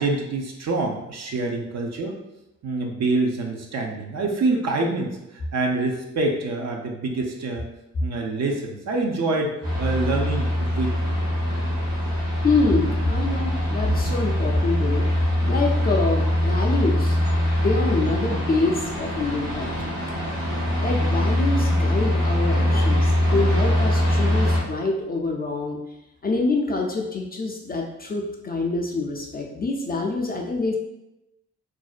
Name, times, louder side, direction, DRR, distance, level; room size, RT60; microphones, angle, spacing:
voice 1, 0.0-2.2 2.6-7.6 8.0-11.2 18.0-18.1 20.4-20.7, right 3 dB, 50° right, 2 dB, 0.5 m, -26 dB
sound 1, 9.6-24.6, left 1 dB, 65° right, 1.0 m, -23 dB
voice 2, 12.4-15.1 15.5-17.2 17.6-20.0 20.8-25.8 26.2-30.8, left 3 dB, 25° left, 0 dB, 0.4 m, -26 dB
2.5 x 2.1 x 2.4 m, 0.90 s
supercardioid pair, 55°, 35 cm